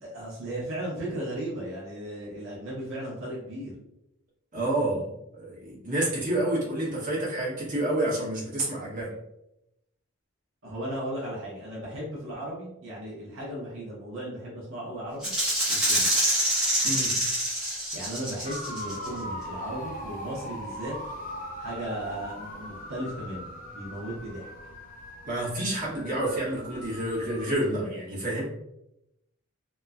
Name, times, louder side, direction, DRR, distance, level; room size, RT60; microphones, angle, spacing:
voice 1, 0.0-3.7 10.6-15.3 15.7-16.2 17.7-20.9 21.6-24.5, right 1 dB, 65° right, -6 dB, 0.7 m, -36 dB
voice 2, 4.5-9.1 16.8-17.2 25.2-28.5, right 1 dB, 35° right, -7 dB, 0.9 m, -29 dB
Rattle (instrument), 15.2-19.1, right 1 dB, 5° right, 0.7 m, -26 dB
sound 1, 18.4-27.5, equal, 40° left, 0.4 m, -40 dB
3.0 x 2.1 x 2.3 m, 0.85 s
head